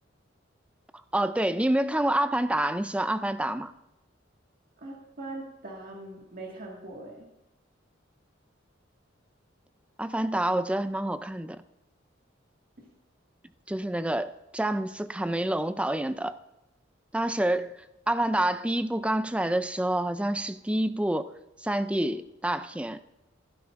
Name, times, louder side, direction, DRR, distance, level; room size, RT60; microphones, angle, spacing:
voice 1, 1.1-3.7 10.0-11.6 13.7-16.4 17.1-17.8 18.1-23.0, right 1 dB, 5° right, 0.4 m, -28 dB
voice 2, 4.8-7.3 12.8-12.9, right 2 dB, 50° right, 1.9 m, -41 dB
16.5 x 10.5 x 2.6 m
head